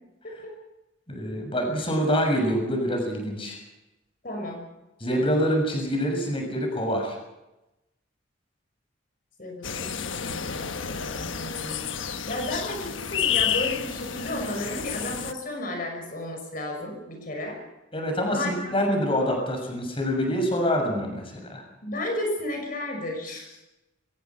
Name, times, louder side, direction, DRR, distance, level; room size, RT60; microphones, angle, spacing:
voice 1, 1.1-3.6 5.0-7.2 17.9-21.6, equal, 30° left, 3 dB, 6.6 m, -26 dB
voice 2, 4.2-4.6 9.4-17.6 18.3-18.7 21.8-23.6, left 1 dB, 45° left, 2 dB, 6.1 m, -33 dB
sound 1, 9.6-15.3, left 8 dB, 90° left, 1.3 m, -30 dB
25.0 x 21.5 x 6.0 m, 0.96 s
head